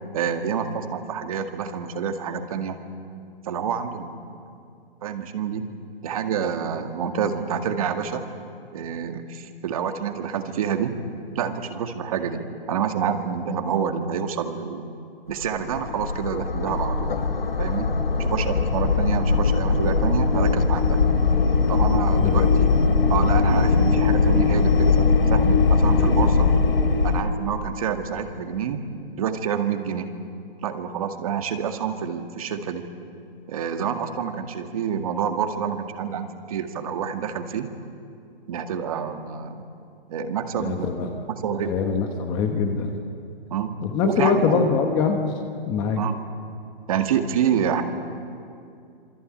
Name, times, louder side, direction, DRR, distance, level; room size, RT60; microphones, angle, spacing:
voice 1, 0.1-2.8 3.4-4.6 5.0-5.7 6.0-8.2 8.7-11.0 11.4-14.9 15.3-17.1 17.6-17.9 18.2-21.0 21.7-22.7 23.1-26.5 27.0-28.8 29.2-30.1 30.6-32.9 33.5-37.7 38.5-39.6 40.1-40.9 41.3-41.7 43.5-44.7 46.0-46.2 46.9-47.8, right 7 dB, 35° right, 6 dB, 2.0 m, -28 dB
sound 1, 15.3-27.2, left 4 dB, 70° left, 3.0 m, -20 dB
voice 2, 22.2-22.5 40.6-41.2 41.6-42.9 43.8-45.2 45.7-46.0, left 6 dB, 15° left, 5 dB, 1.1 m, -23 dB
27.0 x 23.5 x 8.8 m, 2.4 s
hypercardioid pair, 165°, 30 cm